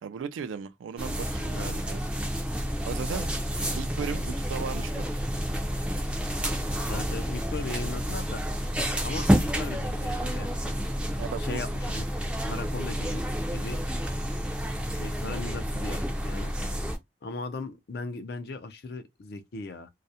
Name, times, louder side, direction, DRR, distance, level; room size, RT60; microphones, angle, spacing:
voice 1, 0.0-2.0 2.8-3.3 3.7-5.2 11.2-11.6 12.5-12.6, right 6 dB, 85° right, 0.3 m, -36 dB
sound 1, 1.0-17.0, equal, 5° right, 0.4 m, -29 dB
voice 2, 6.9-8.4 9.0-10.7 11.4-12.0 12.5-13.8 14.9-16.5 17.2-19.9, left 3 dB, 55° left, 0.4 m, -38 dB
2.3 x 2.1 x 2.7 m
head